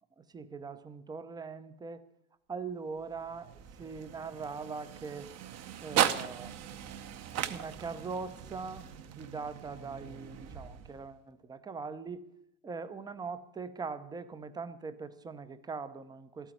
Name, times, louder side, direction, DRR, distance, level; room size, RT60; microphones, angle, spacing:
voice 1, 0.2-2.0 2.5-5.3 5.8-6.6 7.5-8.9 9.2-12.2 12.6-16.5, right 4 dB, 10° right, 13 dB, 0.5 m, -41 dB
sound 1, 3.0-11.2, right 10 dB, 35° right, 0.8 m, -37 dB
12.5 x 9.2 x 9.8 m, 0.79 s
supercardioid pair, 145°, 46 cm